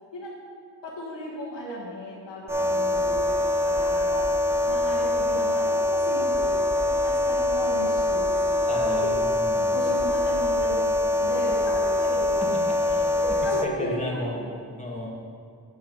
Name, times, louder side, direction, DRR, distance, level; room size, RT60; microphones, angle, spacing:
voice 1, 0.8-3.3 3.6-4.2 4.7-9.1 9.7-12.4 12.8-14.5, left 1 dB, 85° left, -7 dB, 1.6 m, -35 dB
sound 1, 2.5-13.7, left 1 dB, 5° right, 0.5 m, -24 dB
voice 2, 8.7-9.8 12.4-13.0 13.6-14.4 14.8-15.1, left 1 dB, 15° left, -3 dB, 1.7 m, -33 dB
8.3 x 6.0 x 5.4 m, 2.2 s
wide cardioid pair, 75°, 42 cm